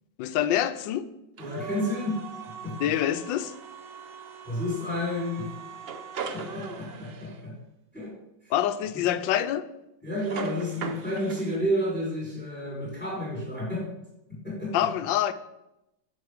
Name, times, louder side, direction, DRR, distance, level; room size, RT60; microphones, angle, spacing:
voice 1, 0.2-1.0 2.8-3.5 8.5-9.6 14.7-15.3, left 11 dB, 85° left, 1.3 m, -26 dB
voice 2, 1.4-2.2 2.6-2.9 4.5-5.5 6.3-7.5 7.9-8.1 8.4-8.5 8.9-9.0 10.0-13.9 14.3-14.9, equal, 5° left, 3.5 m, -31 dB
sound 1, 1.4-7.4 10.2-11.6, right 6 dB, 70° right, 0.5 m, -40 dB
9.9 x 6.3 x 5.0 m
omnidirectional pair, 2.0 m